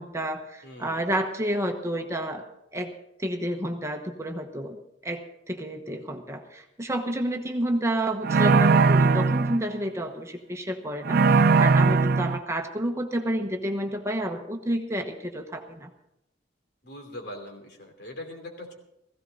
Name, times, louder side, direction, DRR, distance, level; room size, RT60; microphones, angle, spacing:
voice 1, 0.0-2.9 3.2-15.9, right 1 dB, 15° right, 4 dB, 1.1 m, -30 dB
voice 2, 0.6-1.1 16.8-18.7, left 1 dB, 60° left, 3 dB, 2.9 m, -41 dB
sound 1, 8.2-9.6 11.0-12.4, right 4 dB, 55° right, 0.4 m, -19 dB
17.0 x 15.5 x 4.0 m, 0.82 s
head